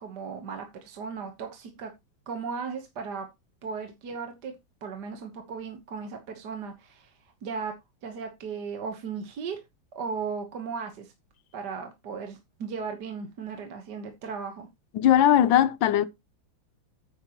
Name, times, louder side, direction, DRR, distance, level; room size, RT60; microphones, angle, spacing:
voice 1, 0.0-1.9 2.3-3.3 3.6-4.5 4.8-7.1 7.4-7.7 8.0-9.6 10.0-11.1 11.5-14.7, right 5 dB, 60° right, 1.8 m, -36 dB
voice 2, 14.9-16.0, left 11 dB, 80° left, 1.5 m, -19 dB
10.0 x 8.9 x 3.0 m
omnidirectional pair, 2.1 m